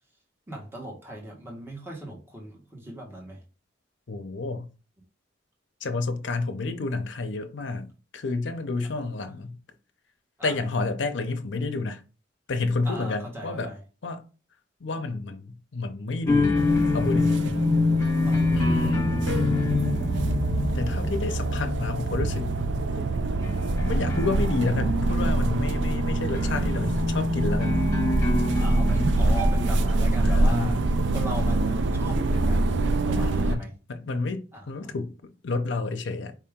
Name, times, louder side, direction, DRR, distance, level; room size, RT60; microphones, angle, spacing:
voice 1, 0.5-3.4 10.4-10.5 12.8-13.8 18.2-18.9 28.6-30.8 31.1-32.7 33.1-33.7 34.5-34.9, equal, 10° right, 1.3 m, -38 dB
voice 2, 4.1-4.7 5.8-9.6 10.4-12.0 12.5-13.7 14.0-14.2 14.8-16.6 16.9-17.5 18.5-19.1 20.7-22.4 23.9-27.8 30.2-30.8 33.1-35.1 35.4-36.4, left 3 dB, 75° left, 0.6 m, -30 dB
sound 1, 16.3-29.8, left 3 dB, 15° left, 1.4 m, -27 dB
sound 2, 16.6-33.6, right 2 dB, 70° right, 0.4 m, -25 dB
4.7 x 2.9 x 3.5 m
head